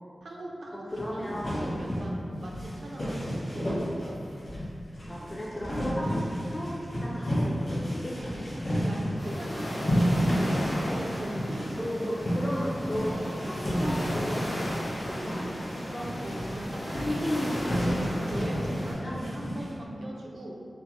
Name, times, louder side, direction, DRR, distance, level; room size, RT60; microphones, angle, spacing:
voice 1, 0.2-0.9 1.1-1.2 1.6-3.7 8.8-11.9 13.4-13.6 16.2-17.3 17.7-20.7, right 1 dB, 80° right, -2 dB, 0.4 m, -40 dB
voice 2, 0.7-1.6 5.1-8.2 11.8-16.1 17.0-18.0 18.5-19.2, equal, 20° left, -5 dB, 0.3 m, -35 dB
sound 1, 0.9-19.7, equal, 50° left, 1.1 m, -31 dB
sound 2, 9.2-18.9, equal, 85° left, 1.0 m, -35 dB
3.3 x 2.0 x 2.9 m, 2.4 s
wide cardioid pair, 90°, 0 cm